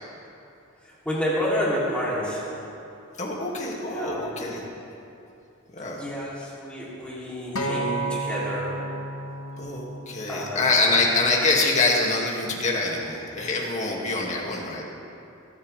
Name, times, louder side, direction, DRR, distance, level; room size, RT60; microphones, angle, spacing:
voice 1, 0.8-2.7 3.9-4.4 5.9-8.9 10.3-10.7, equal, 5° left, -8 dB, 3.0 m, -30 dB
voice 2, 3.2-4.7 5.7-6.0 9.6-14.9, left 3 dB, 35° left, -3 dB, 2.2 m, -25 dB
Acoustic guitar, 7.6-11.8 12.6-12.8, right 2 dB, 90° left, 1.1 m, -33 dB
23.5 x 10.0 x 3.4 m, 2.7 s
head